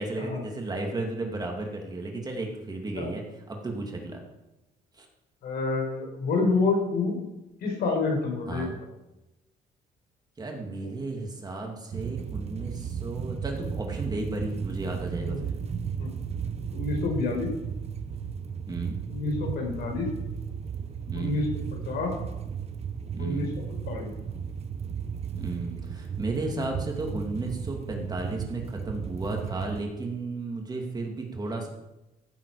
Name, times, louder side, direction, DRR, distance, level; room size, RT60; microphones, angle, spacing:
voice 1, 0.0-4.2 5.0-5.1 8.5-8.7 10.4-15.5 18.7-19.0 21.1-21.4 23.1-23.5 25.4-31.7, right 2 dB, 25° right, 1 dB, 2.5 m, -34 dB
voice 2, 5.4-7.2 7.6-8.7 15.2-15.4 16.0-16.1 16.7-17.5 19.1-20.1 21.1-22.1 23.2-24.1, left 3 dB, 70° left, 1 dB, 4.6 m, -28 dB
sound 1, 11.9-29.8, right 7 dB, 40° right, 0.9 m, -35 dB
15.0 x 7.7 x 4.9 m, 0.96 s
cardioid pair, 110°, 17 cm